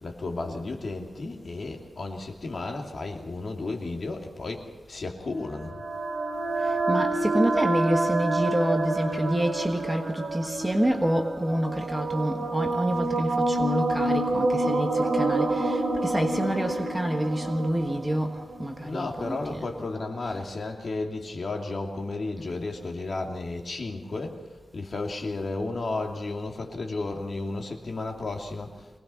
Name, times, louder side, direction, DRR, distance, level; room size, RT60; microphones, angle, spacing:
voice 1, 0.0-5.7 18.8-24.4 24.7-29.0, left 3 dB, 45° left, 1 dB, 2.7 m, -33 dB
sound 1, 5.5-19.1, right 2 dB, 65° right, 3.1 m, -28 dB
voice 2, 6.6-19.7 20.2-20.3, right 1 dB, 10° right, 4 dB, 1.4 m, -28 dB
24.0 x 19.0 x 5.7 m, 1.2 s
wide cardioid pair, 150°, 0 cm